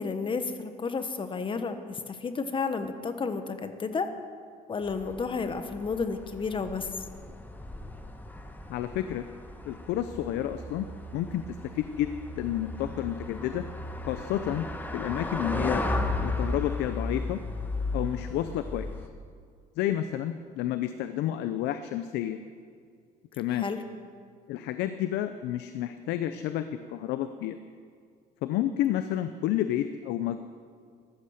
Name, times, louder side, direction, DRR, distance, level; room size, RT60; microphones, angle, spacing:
voice 1, 0.0-4.1 4.7-6.9 23.6-23.8, left 4 dB, 30° left, 9 dB, 1.2 m, -31 dB
sound 1, 4.8-19.1, left 2 dB, 10° left, 1.3 m, -35 dB
voice 2, 8.7-9.3 9.6-10.9 11.1-11.4 11.7-12.1 12.4-13.7 14.1-14.7 14.9-15.8 16.2-17.4 17.9-18.9 19.8-22.4 23.4-23.7 24.5-27.6 28.4-30.4, left 12 dB, 85° left, 10 dB, 0.7 m, -30 dB
15.0 x 13.0 x 6.5 m, 2.1 s
cardioid pair, 110°, 17 cm